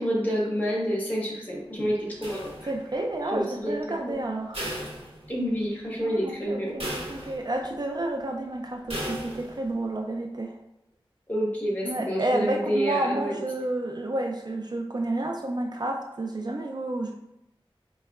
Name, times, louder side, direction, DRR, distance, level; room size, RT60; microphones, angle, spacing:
voice 1, 0.0-2.5 3.3-4.2 5.3-6.8 11.3-13.4, equal, 20° left, -5 dB, 1.4 m, -28 dB
sound 1, 2.2-3.0 4.5-5.7 6.1-6.2 6.8-7.7 8.9-9.7, equal, 80° right, 1.1 m, -36 dB
voice 2, 2.7-4.6 6.0-10.5 11.8-17.1, right 2 dB, 45° right, 2 dB, 0.3 m, -30 dB
4.3 x 3.0 x 2.4 m, 0.84 s
wide cardioid pair, 55°, 10 cm